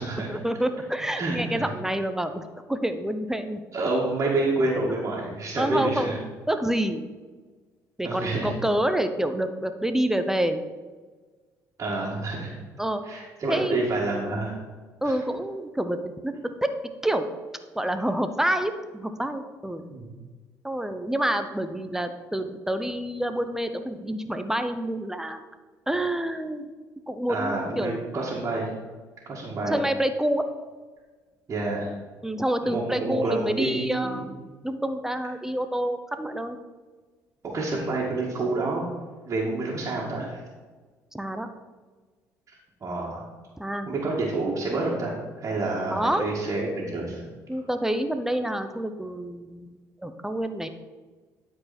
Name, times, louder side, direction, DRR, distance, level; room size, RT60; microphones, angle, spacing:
voice 1, 0.3-2.4 2.7-3.6 4.7-4.9 5.5-6.2 6.5-7.0 8.0-10.6 12.8-13.0 13.5-13.8 15.0-16.3 16.6-16.7 17.0-17.3 17.7-19.9 20.6-25.4 25.9-26.7 27.1-28.2 29.7-30.4 32.2-34.3 34.6-36.6 41.1-41.5 43.6-43.9 45.9-46.3 47.5-50.7, right 1 dB, 5° right, 8 dB, 0.7 m, -27 dB
voice 2, 1.1-1.7 3.7-6.2 8.0-8.5 11.8-12.5 13.0-14.5 15.0-15.1 19.9-20.1 27.3-28.7 29.3-29.8 31.5-31.9 32.6-34.2 37.5-38.9 39.2-40.4 42.5-43.3 43.9-47.2, right 2 dB, 40° right, -5 dB, 2.1 m, -28 dB
12.0 x 4.7 x 4.3 m, 1.4 s
supercardioid pair, 75°, 7 cm